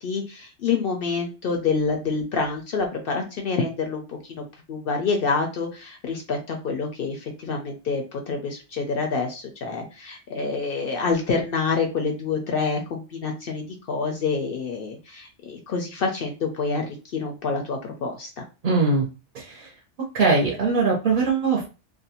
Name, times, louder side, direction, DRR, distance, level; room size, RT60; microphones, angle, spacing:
voice 1, 0.0-18.4, left 4 dB, 60° left, 3 dB, 0.6 m, -27 dB
voice 2, 18.6-19.1 19.3-19.7 20.1-21.7, right 4 dB, 50° right, -2 dB, 0.7 m, -21 dB
2.5 x 2.2 x 2.8 m, 0.31 s
omnidirectional pair, 1.3 m